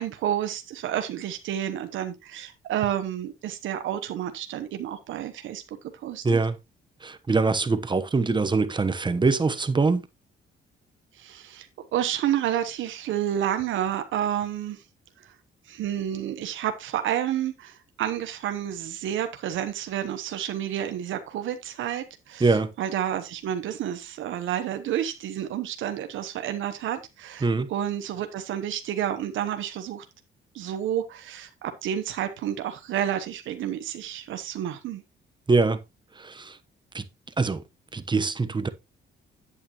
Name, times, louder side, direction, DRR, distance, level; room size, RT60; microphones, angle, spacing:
voice 1, 0.0-5.6 6.0-6.4 11.2-14.8 15.7-30.0 30.5-35.0, right 10 dB, 80° right, 1.0 m, -30 dB
voice 2, 6.2-6.6 7.0-10.0 22.4-22.7 27.4-27.7 35.5-35.8 36.2-36.5 36.9-37.0 37.4-37.6 37.9-38.7, right 4 dB, 25° right, 1.0 m, -23 dB
8.6 x 8.6 x 3.0 m
cardioid pair, 90°, 20 cm